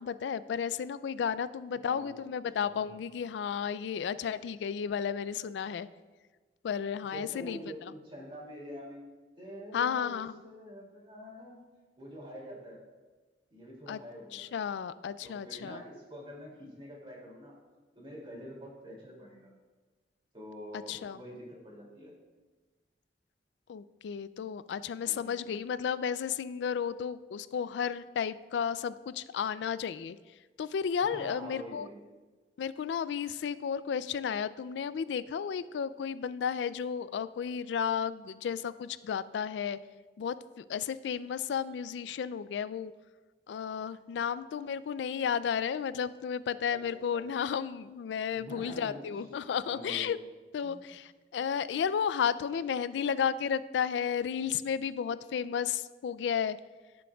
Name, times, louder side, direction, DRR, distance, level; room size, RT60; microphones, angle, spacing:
voice 1, 0.0-5.9 6.6-7.6 9.7-10.4 13.9-14.0 14.3-15.8 20.9-21.2 23.7-30.2 30.6-31.9 32.6-39.8 40.2-42.9 43.5-50.2 50.5-56.6, left 7 dB, 75° left, 16 dB, 0.3 m, -33 dB
voice 2, 1.8-2.1 2.5-2.9 7.1-9.0 9.4-11.6 12.0-12.8 13.5-14.5 15.2-17.5 18.0-19.5 20.3-22.1 25.0-25.5 31.0-32.0 46.7-46.8 47.1-47.2 48.3-49.0 49.7-50.2 50.6-50.8, equal, 30° right, -4 dB, 2.5 m, -46 dB
15.0 x 6.1 x 2.3 m, 1.3 s
head